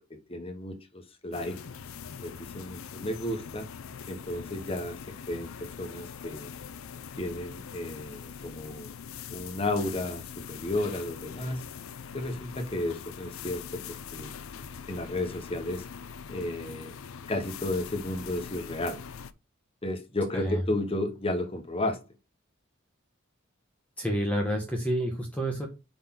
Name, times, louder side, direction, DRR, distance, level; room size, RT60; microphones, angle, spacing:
voice 1, 0.1-1.6 2.2-3.7 4.1-6.5 7.2-9.0 9.3-11.6 12.1-14.3 14.9-15.9 16.3-16.9 17.3-19.0 19.8-22.0, left 1 dB, 25° left, 1.0 m, -33 dB
sound 1, 1.3-19.3, left 7 dB, 80° left, 0.5 m, -43 dB
voice 2, 24.0-25.7, equal, 5° left, 1.0 m, -29 dB
5.1 x 4.0 x 5.8 m
head